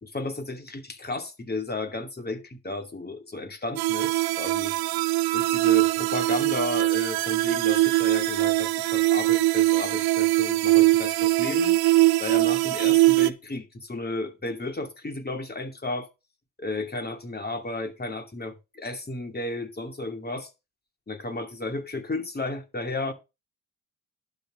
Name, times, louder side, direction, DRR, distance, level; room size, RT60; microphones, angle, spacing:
voice 1, 0.0-4.7 5.3-11.8 12.2-16.1 16.6-20.5 21.1-23.1, left 2 dB, 25° left, 2.5 m, -33 dB
sound 1, 3.8-13.3, right 19 dB, 70° right, 0.8 m, -22 dB
11.5 x 4.1 x 7.4 m
hypercardioid pair, 50°, 38 cm